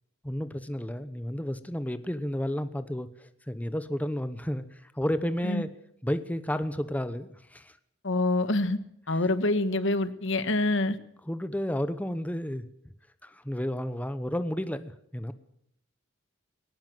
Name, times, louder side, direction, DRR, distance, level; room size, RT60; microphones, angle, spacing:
voice 1, 0.2-5.7 6.0-7.8 9.1-9.2 11.3-12.6 13.2-15.3, equal, 10° left, 11 dB, 1.0 m, -32 dB
voice 2, 8.0-8.8 9.1-11.0, left 2 dB, 65° left, 12 dB, 1.5 m, -26 dB
20.5 x 18.5 x 7.8 m, 0.72 s
head